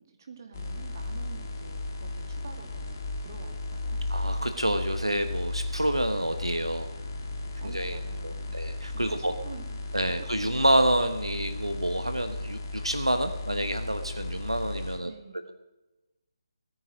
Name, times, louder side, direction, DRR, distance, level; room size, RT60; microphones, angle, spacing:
voice 1, 0.2-4.1 7.6-9.9 10.4-10.5 15.0-15.5, right 5 dB, 40° right, 4 dB, 2.2 m, -48 dB
sound 1, 0.5-15.0, left 2 dB, 30° left, 2.0 m, -35 dB
voice 2, 4.1-6.9 7.6-8.0 8.2-9.3 9.9-15.1, right 1 dB, 85° right, 8 dB, 1.2 m, -28 dB
17.0 x 9.4 x 6.4 m, 1.1 s
figure-of-eight pair, 145°, 3 cm